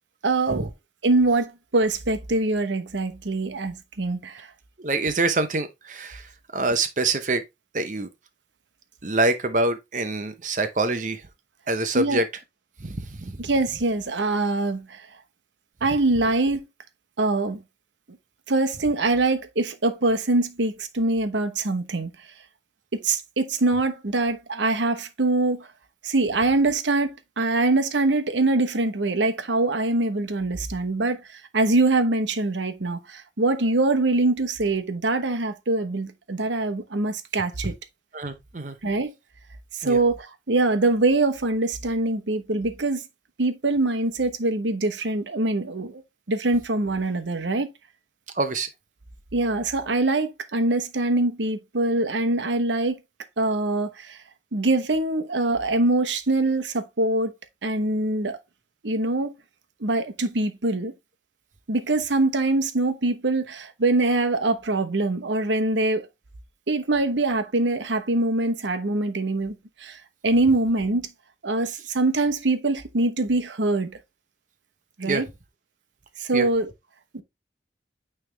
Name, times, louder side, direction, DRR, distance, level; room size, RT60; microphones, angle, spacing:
voice 1, 0.2-0.7 1.0-4.5 11.9-12.2 13.4-15.1 15.8-16.6 17.2-17.6 18.5-22.1 23.0-25.7 26.0-37.7 38.8-39.1 39.7-43.0 43.4-46.0 46.3-47.7 49.3-53.0 53.4-54.2 54.5-57.3 57.6-58.4 58.8-59.3 59.8-60.9 61.7-66.1 66.7-69.5 69.8-71.1 71.4-74.0 75.0-75.3 76.2-76.7 77.1-77.2, right 2 dB, 85° right, 1.0 m, -23 dB
voice 2, 4.8-7.4 7.7-8.1 9.0-11.2 11.7-12.2 12.8-13.3 38.1-38.8 39.8-40.0 48.3-48.7 75.0-75.2 76.3-76.5, right 2 dB, 45° right, 0.7 m, -25 dB
9.2 x 3.4 x 3.3 m
head